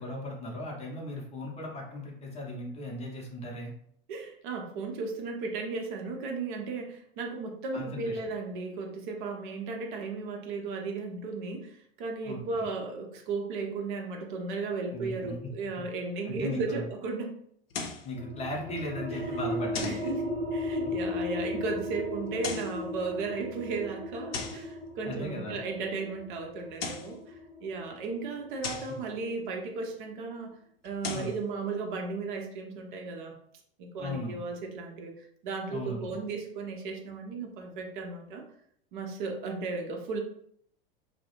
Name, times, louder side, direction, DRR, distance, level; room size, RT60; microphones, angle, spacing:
voice 1, 0.0-3.7 7.7-8.2 12.2-12.7 14.9-15.5 16.2-16.8 18.0-20.1 20.8-20.9 25.0-25.6 31.1-31.3 34.0-34.4 35.7-36.1, left 1 dB, 20° left, 0 dB, 0.6 m, -37 dB
voice 2, 4.1-17.3 19.4-20.2 20.5-27.2 27.6-30.5 30.8-33.3 33.8-38.4 38.9-40.2, right 4 dB, 55° right, 2 dB, 0.6 m, -35 dB
sound 1, 17.7-18.1 19.7-20.1 22.3-22.8 24.3-24.7 26.6-27.2 28.6-29.0 30.8-31.4, left 4 dB, 80° left, 0.5 m, -37 dB
sound 2, 18.1-29.4, left 1 dB, 20° right, 0.9 m, -36 dB
2.3 x 2.0 x 2.9 m, 0.66 s
hypercardioid pair, 90°, 30 cm